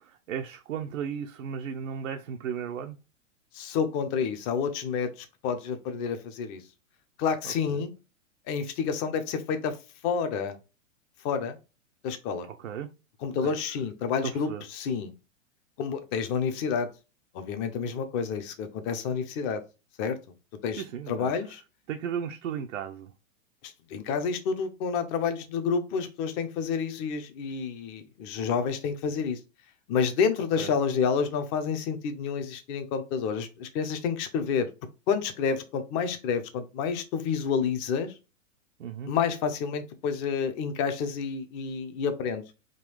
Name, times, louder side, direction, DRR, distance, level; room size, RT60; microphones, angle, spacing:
voice 1, 0.0-3.0 7.4-7.9 12.6-12.9 13.4-13.5 14.2-14.6 20.7-21.3 21.9-23.1 30.6-30.7 38.8-39.1, right 8 dB, 70° right, 0.6 m, -35 dB
voice 2, 3.5-6.6 7.2-7.9 8.5-9.8 10.0-10.6 11.2-11.6 12.0-12.5 13.2-15.1 15.8-16.9 17.3-19.6 20.0-20.2 20.6-21.6 23.6-29.4 29.9-34.7 35.1-38.1 39.1-42.5, left 6 dB, 30° left, 0.6 m, -29 dB
3.8 x 2.3 x 3.2 m
hypercardioid pair, 110°, 39 cm